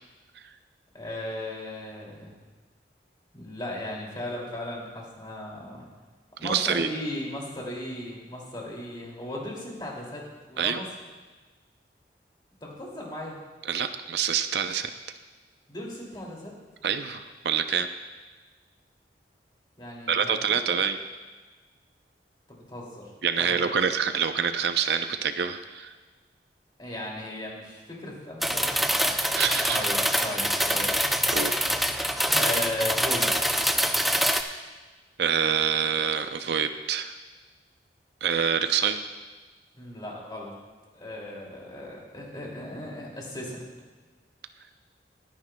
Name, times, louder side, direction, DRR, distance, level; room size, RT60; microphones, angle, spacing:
voice 1, 0.9-2.3 3.3-5.8 6.4-10.9 12.6-13.4 15.7-16.5 19.8-20.4 20.7-20.8 22.5-23.1 23.4-23.7 26.8-28.9 29.7-29.9 30.2-31.0 32.3-33.4 39.8-40.5 40.9-43.7, left 1 dB, 25° left, -3 dB, 2.5 m, -36 dB
voice 2, 6.4-6.9 10.6-10.8 13.6-14.9 16.8-17.9 20.1-21.0 23.2-25.9 29.4-29.8 31.3-31.5 35.2-37.1 38.2-39.0, right 7 dB, 65° right, 8 dB, 0.5 m, -26 dB
sound 1, 28.4-34.4, equal, ahead, 0.3 m, -25 dB
20.5 x 9.6 x 2.2 m, 1.3 s
head